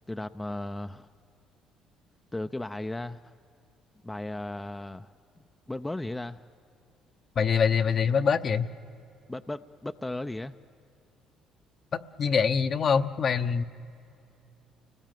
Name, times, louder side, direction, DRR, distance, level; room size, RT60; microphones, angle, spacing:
voice 1, 0.1-1.1 2.3-3.3 4.0-5.1 5.7-6.4 9.3-10.5, left 1 dB, 10° left, 8 dB, 0.6 m, -35 dB
voice 2, 7.4-8.7 11.9-13.6, left 6 dB, 45° left, 9 dB, 0.9 m, -24 dB
29.5 x 19.5 x 9.2 m, 2.7 s
supercardioid pair, 85°, 0 cm